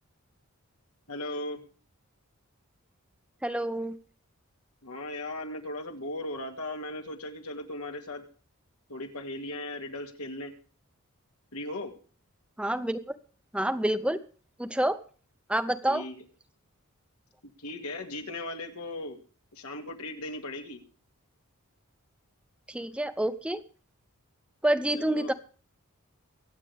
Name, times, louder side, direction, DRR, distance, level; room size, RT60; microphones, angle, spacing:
voice 1, 1.1-1.6 4.8-8.2 8.9-10.5 11.5-11.9 15.9-16.2 17.6-19.2 19.5-20.8 24.9-25.3, left 1 dB, 85° left, 4 dB, 2.4 m, -37 dB
voice 2, 3.4-4.0 12.6-13.0 13.5-14.2 14.6-15.0 15.5-16.0 22.7-23.6 24.6-25.3, right 1 dB, 5° right, 11 dB, 0.6 m, -28 dB
24.0 x 8.3 x 3.5 m, 0.41 s
head